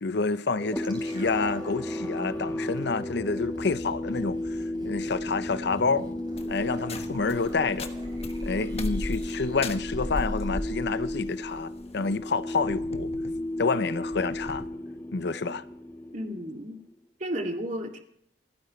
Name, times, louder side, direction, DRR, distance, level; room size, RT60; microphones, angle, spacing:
voice 1, 0.0-4.4 4.8-6.1 6.5-7.9 8.4-13.1 13.6-14.6 15.1-15.6, left 4 dB, 65° left, 0.7 m, -28 dB
sound 1, 0.6-16.9, left 1 dB, 15° left, 1.5 m, -34 dB
sound 2, 0.8-10.9 11.2-11.3, right 1 dB, 25° right, 4.3 m, -47 dB
sound 3, 6.4-14.7, left 1 dB, 35° left, 1.3 m, -37 dB
voice 2, 16.1-16.8 17.2-18.0, equal, 45° right, 2.5 m, -33 dB
28.5 x 9.9 x 3.2 m
head